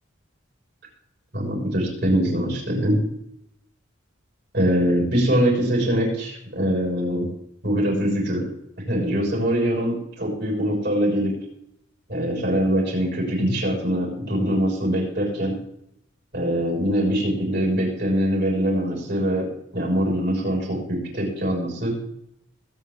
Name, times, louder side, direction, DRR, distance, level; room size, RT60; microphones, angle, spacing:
voice 1, 1.3-3.0 4.5-7.3 7.6-8.4 8.9-11.3 12.1-15.6 16.3-19.4 19.7-22.0, equal, 50° right, -2 dB, 6.4 m, -23 dB
22.5 x 9.2 x 3.8 m, 0.77 s
head